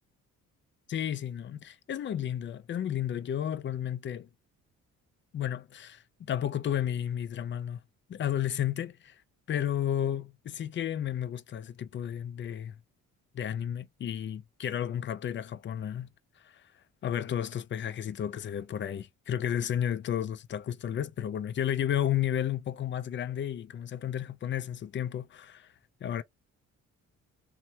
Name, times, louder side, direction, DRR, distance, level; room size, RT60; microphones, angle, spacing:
voice 1, 0.9-4.3 5.3-7.8 8.1-9.2 9.5-12.8 13.3-16.1 16.4-16.6 17.0-25.7 26.0-26.2, left 10 dB, 40° left, 0.4 m, -32 dB
3.1 x 2.1 x 2.7 m
cardioid pair, 90°, 30 cm